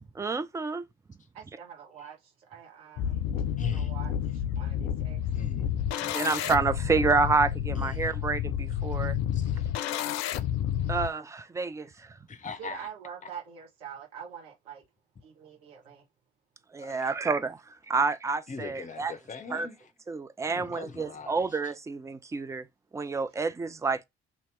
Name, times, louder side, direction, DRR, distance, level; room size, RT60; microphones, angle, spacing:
voice 1, 0.2-0.9 6.0-9.2 10.9-12.1 16.7-19.1 19.5-19.7 20.1-22.7 22.9-24.0, right 4 dB, 10° right, 0.3 m, -29 dB
voice 2, 1.3-3.2 3.6-5.2 12.6-14.8 15.2-16.0, right 8 dB, 70° right, 1.3 m, -45 dB
sound 1, 3.0-11.1, left 10 dB, 55° left, 0.5 m, -30 dB
voice 3, 3.6-3.9 5.3-5.7 7.8-8.1 9.3-9.6 12.3-12.9 16.8-17.1 18.5-19.9 20.5-21.5, left 5 dB, 25° left, 0.8 m, -40 dB
2.9 x 2.9 x 3.1 m
figure-of-eight pair, 50°, 31 cm